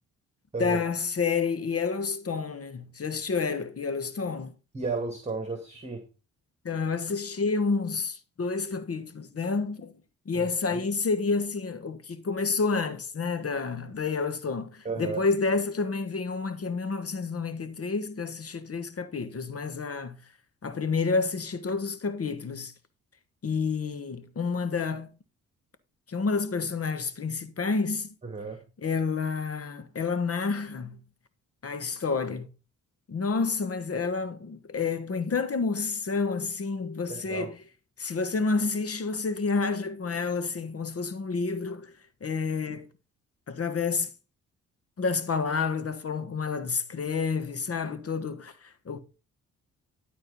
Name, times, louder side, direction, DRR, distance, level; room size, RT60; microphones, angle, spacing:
voice 1, 0.6-4.5 6.6-9.9 10.2-20.2 20.6-22.7 23.4-25.1 26.1-28.1 28.8-31.0 31.6-32.5 33.1-37.6 38.0-41.9 42.2-42.9 43.5-44.1 45.0-49.0, left 4 dB, 40° left, 1.3 m, -29 dB
voice 2, 4.7-6.0 10.3-10.8 14.8-15.2 28.2-28.6 37.1-37.5, right 4 dB, 20° right, 2.2 m, -33 dB
12.0 x 4.5 x 5.4 m
supercardioid pair, 50°, 35 cm